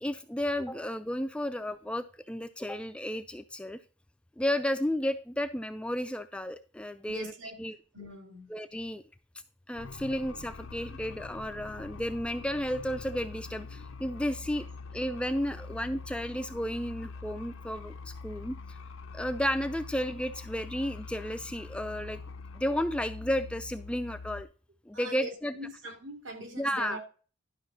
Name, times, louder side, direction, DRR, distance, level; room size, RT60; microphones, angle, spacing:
voice 1, 0.0-3.8 4.4-7.3 7.6-7.8 8.5-9.0 9.7-14.7 14.9-18.6 19.1-22.2 22.5-24.5 24.9-25.6 26.6-27.0, equal, 5° left, 9 dB, 0.3 m, -32 dB
voice 2, 7.1-7.6 7.9-8.5 24.9-27.0, right 1 dB, 65° right, 4 dB, 2.4 m, -42 dB
sound 1, 9.8-24.4, left 4 dB, 90° left, 0.7 m, -44 dB
12.0 x 5.7 x 3.9 m, 0.37 s
head